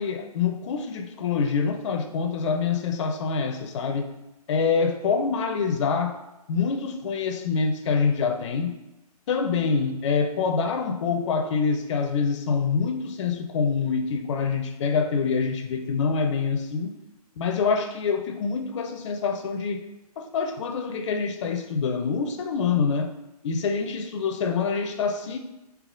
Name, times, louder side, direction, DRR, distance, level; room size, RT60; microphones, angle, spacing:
voice 1, 0.0-4.1 4.5-6.2 6.5-8.7 9.3-16.9 17.4-19.8 20.2-23.1 23.4-25.4, left 5 dB, 45° left, 7 dB, 0.5 m, -26 dB
3.5 x 2.9 x 3.6 m, 0.94 s
hypercardioid pair, 135°, 20 cm